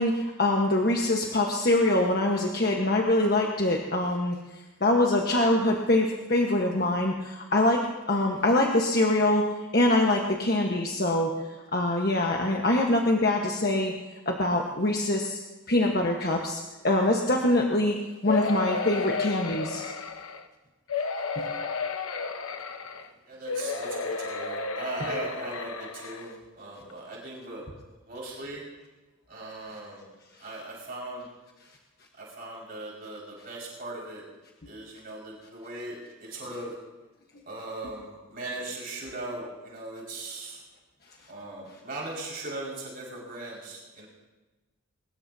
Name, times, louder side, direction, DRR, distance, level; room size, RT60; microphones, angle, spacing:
voice 1, 0.0-13.9 14.2-15.4 15.7-18.0 18.2-19.8 21.3-21.5, left 1 dB, 45° left, 0 dB, 1.4 m, -24 dB
sound 1, 18.3-20.4 20.9-23.1 23.5-26.3 26.9-27.0 27.3-27.4, left 4 dB, 85° left, 1.1 m, -32 dB
voice 2, 23.3-27.7 28.1-28.6 29.3-30.1 30.4-31.3 32.2-34.2 34.6-36.7 37.5-40.6 41.3-44.1, right 2 dB, 45° right, -4 dB, 5.6 m, -39 dB
23.0 x 20.5 x 2.9 m, 1.2 s
head